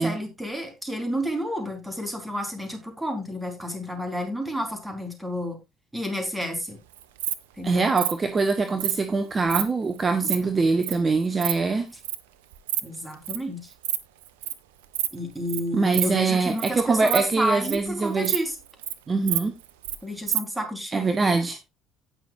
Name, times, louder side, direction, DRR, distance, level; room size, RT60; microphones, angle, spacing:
voice 1, 0.0-5.6 5.9-6.8 7.6-7.9 12.8-13.7 15.1-18.6 20.0-21.3, equal, 5° right, 4.1 m, -30 dB
Insect, 6.9-7.3 8.0-8.1 8.8-9.0 9.4-9.6 10.0-10.4 10.8-10.9 11.2-11.5 12.0-12.2 12.5-12.8 13.1-13.4 13.7-14.0 14.2-14.5 14.9-15.1 15.5-15.6 15.9-16.1 16.4-16.7 17.0-17.9 18.2-18.4 18.7-18.9 19.3-20.0 20.3-20.4, right 12 dB, 75° right, 0.7 m, -27 dB
voice 2, 7.6-11.9 15.7-18.3 19.1-19.5 20.9-21.6, right 4 dB, 30° right, 1.0 m, -23 dB
17.5 x 6.1 x 2.5 m
figure-of-eight pair, 55°, 0 cm